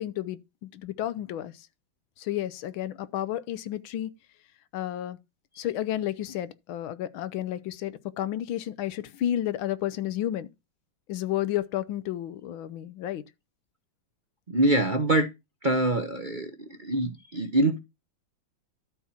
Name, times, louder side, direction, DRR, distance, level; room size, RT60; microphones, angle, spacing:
voice 1, 0.0-1.7 2.2-4.1 4.7-5.2 5.6-10.5 11.1-13.2, left 12 dB, 85° left, 1.6 m, -31 dB
voice 2, 14.5-15.3 15.6-17.8, right 2 dB, 35° right, 0.8 m, -25 dB
12.0 x 4.4 x 5.6 m
omnidirectional pair, 2.2 m